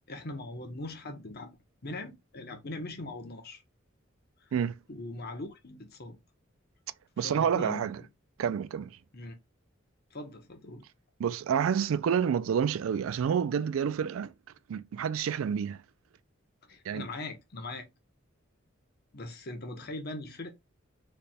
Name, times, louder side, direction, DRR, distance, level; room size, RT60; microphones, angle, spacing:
voice 1, 0.1-3.6 4.4-4.5 4.9-6.2 7.2-8.1 9.1-9.4 10.1-10.8 16.7-17.9 19.1-20.5, left 2 dB, 50° left, 0.9 m, -41 dB
voice 2, 7.2-8.0 8.4-9.0 11.2-14.3 14.7-15.8 16.8-17.1, right 7 dB, 85° right, 0.3 m, -28 dB
4.1 x 3.3 x 2.2 m
head